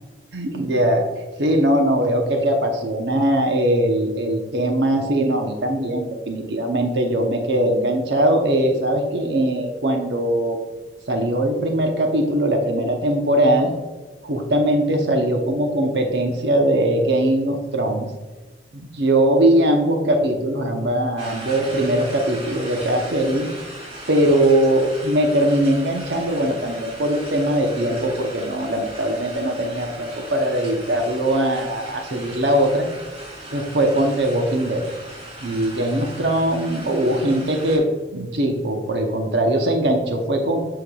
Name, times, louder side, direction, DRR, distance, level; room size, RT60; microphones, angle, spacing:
voice 1, 0.3-1.1 1.4-10.6 11.1-13.7 14.2-18.1 18.7-23.5 24.1-32.9 33.5-34.8 35.4-37.9 38.1-40.6, right 1 dB, 80° right, 3 dB, 0.8 m, -20 dB
sound 1, 21.2-37.8, right 1 dB, 35° right, 2.1 m, -38 dB
8.3 x 5.7 x 2.3 m, 1.2 s
head